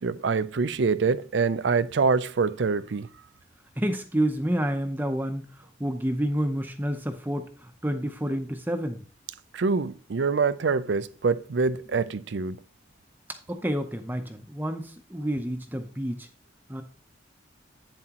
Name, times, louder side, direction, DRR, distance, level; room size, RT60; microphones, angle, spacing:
voice 1, 0.0-3.1 9.5-12.6, right 4 dB, 65° right, 0.5 m, -25 dB
voice 2, 3.8-9.0 13.3-16.3 16.7-16.8, right 1 dB, 10° right, 0.6 m, -29 dB
8.7 x 7.4 x 2.9 m
head